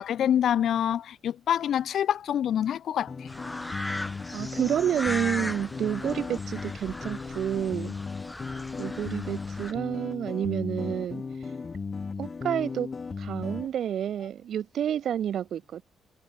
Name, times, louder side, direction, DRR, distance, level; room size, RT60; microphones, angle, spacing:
voice 1, 0.0-3.3, left 10 dB, 65° left, 0.6 m, -26 dB
sound 1, 3.1-13.7, left 4 dB, 35° left, 2.7 m, -36 dB
sound 2, 3.3-9.7, left 1 dB, 10° left, 6.0 m, -38 dB
voice 2, 4.3-7.9 8.8-11.2 12.2-12.9 13.2-15.8, right 9 dB, 65° right, 1.1 m, -29 dB
cardioid pair, 90°, 0 cm